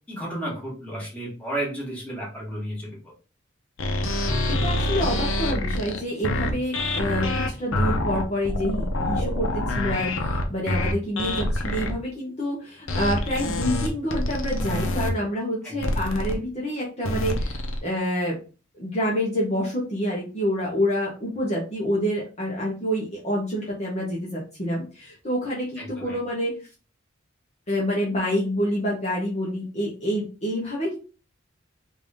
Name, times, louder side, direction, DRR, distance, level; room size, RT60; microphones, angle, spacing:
voice 1, 0.1-2.9 15.6-16.1 25.8-26.2, right 1 dB, 5° left, -5 dB, 1.6 m, -33 dB
sound 1, 3.8-11.9 12.9-15.1 15.8-16.3 17.0-17.8, left 1 dB, 90° left, 0.7 m, -26 dB
voice 2, 4.5-18.4 18.8-26.6 27.7-31.0, equal, 35° left, -4 dB, 0.9 m, -27 dB
3.4 x 2.6 x 3.5 m, 0.34 s
head